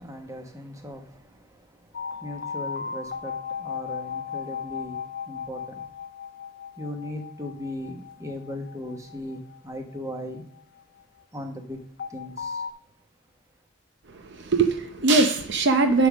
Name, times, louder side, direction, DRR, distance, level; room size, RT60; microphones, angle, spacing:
voice 1, 0.0-5.8 6.8-10.4 11.3-11.8 12.1-12.7, left 1 dB, 15° right, 1.2 m, -38 dB
sound 1, 1.9-11.0 12.0-12.7, left 6 dB, 45° left, 0.6 m, -36 dB
voice 2, 14.1-16.1, right 3 dB, 60° right, 0.7 m, -21 dB
10.5 x 3.6 x 6.1 m
head